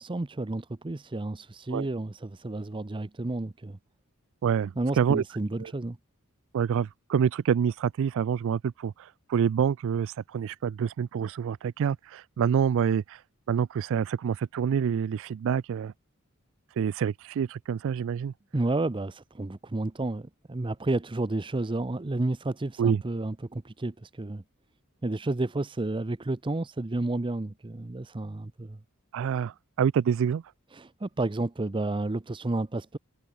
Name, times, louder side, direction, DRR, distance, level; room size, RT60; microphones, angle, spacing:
voice 1, 0.0-3.8 4.8-6.0 18.5-24.4 25.0-28.8 30.7-33.0, right 2 dB, 25° right, 0.6 m, -31 dB
voice 2, 4.4-5.2 5.6-5.7 6.5-13.2 13.5-15.9 16.8-18.3 22.8-23.0 29.1-30.4, right 7 dB, 65° right, 0.3 m, -27 dB
head